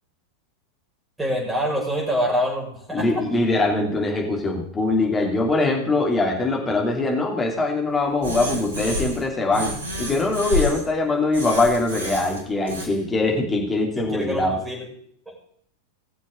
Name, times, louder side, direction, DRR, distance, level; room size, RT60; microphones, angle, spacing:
voice 1, 1.2-3.2 3.7-3.8 12.8-12.9 14.0-14.9 15.3-15.4, equal, 10° right, -3 dB, 5.6 m, -26 dB
voice 2, 2.9-9.7 10.0-14.6, left 2 dB, 15° left, 1 dB, 2.9 m, -22 dB
sound 1, 8.2-9.3 9.5-10.9 11.3-12.9, left 1 dB, 65° right, 2.9 m, -29 dB
20.5 x 7.2 x 3.8 m, 0.64 s
figure-of-eight pair, 90°, 0 cm